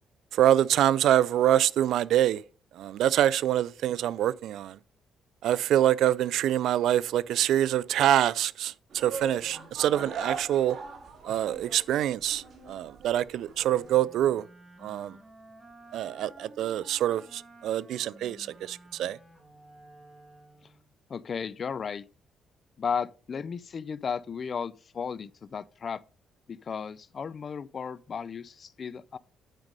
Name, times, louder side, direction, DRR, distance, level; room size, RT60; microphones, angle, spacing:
voice 1, 0.3-2.4 2.8-4.8 5.4-10.8 11.2-14.4 14.8-15.2 15.9-19.2, right 12 dB, 80° right, 0.3 m, -25 dB
sound 1, 8.9-13.9, right 5 dB, 55° right, 2.9 m, -40 dB
Wind instrument woodwind instrument, 13.5-20.9, right 1 dB, 20° right, 2.6 m, -53 dB
voice 2, 21.1-22.1 22.8-26.0 26.5-29.2, left 6 dB, 45° left, 0.5 m, -34 dB
9.0 x 5.3 x 5.2 m
cardioid pair, 90°, 0 cm